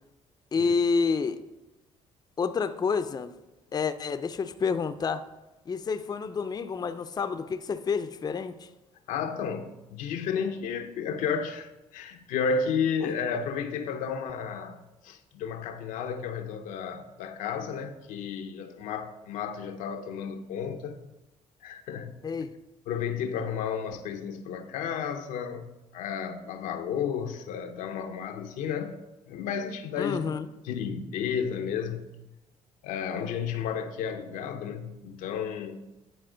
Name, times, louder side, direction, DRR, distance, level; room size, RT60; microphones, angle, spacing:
voice 1, 0.5-1.4 2.4-3.3 3.7-5.2 5.7-8.7 13.0-13.1 22.2-22.5 30.0-30.5, left 5 dB, 30° left, 0.5 m, -29 dB
voice 2, 9.1-21.0 21.6-22.2 22.9-29.0 29.3-30.3 30.6-32.1 32.8-35.9, left 6 dB, 80° left, 0.6 m, -32 dB
10.0 x 4.2 x 3.8 m
supercardioid pair, 75°, 13 cm